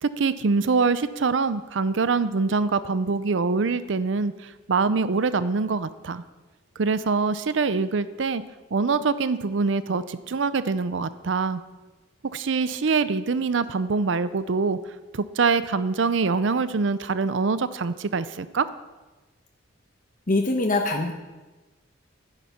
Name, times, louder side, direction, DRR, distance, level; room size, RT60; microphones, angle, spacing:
voice 1, 0.0-6.2 6.8-8.4 8.7-11.6 12.3-14.8 15.1-18.7, right 4 dB, 65° right, 14 dB, 0.5 m, -24 dB
voice 2, 20.3-21.1, left 2 dB, 45° left, 2 dB, 1.0 m, -23 dB
12.0 x 10.5 x 5.6 m, 1.2 s
head